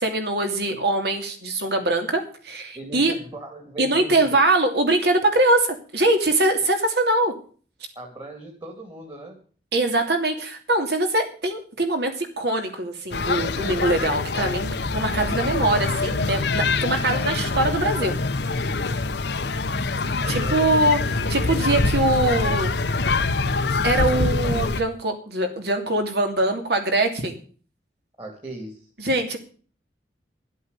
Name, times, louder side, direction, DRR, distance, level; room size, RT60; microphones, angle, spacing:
voice 1, 0.0-3.1 3.8-7.3 9.7-18.1 20.3-22.7 23.8-27.4 29.0-29.4, right 2 dB, 60° right, 5 dB, 2.8 m, -23 dB
voice 2, 2.7-4.4 7.9-9.4 20.2-20.8 28.2-28.9, right 2 dB, 25° right, 1 dB, 2.8 m, -39 dB
sound 1, 13.1-24.8, left 3 dB, 65° left, 0.9 m, -24 dB
12.5 x 8.2 x 8.3 m, 0.42 s
head